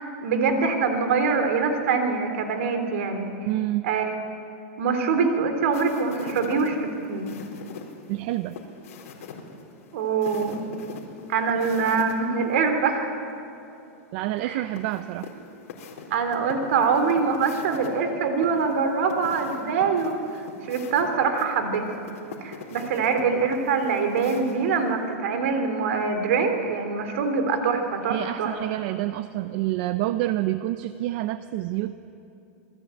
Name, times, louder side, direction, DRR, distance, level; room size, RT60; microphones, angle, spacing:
voice 1, 0.0-3.3 3.8-4.1 4.8-7.3 9.9-10.7 11.3-13.1 14.4-14.6 16.1-22.0 22.4-28.6, right 5 dB, 60° right, 7 dB, 3.4 m, -24 dB
voice 2, 3.5-3.9 8.1-8.6 14.1-15.3 28.1-31.9, right 15 dB, 40° right, 12 dB, 0.6 m, -28 dB
sound 1, 5.7-12.1 12.5-12.6 14.7-17.9 18.4-24.9, left 5 dB, 70° left, 4.4 m, -42 dB
27.0 x 19.5 x 9.1 m, 2.8 s
supercardioid pair, 170°, 8 cm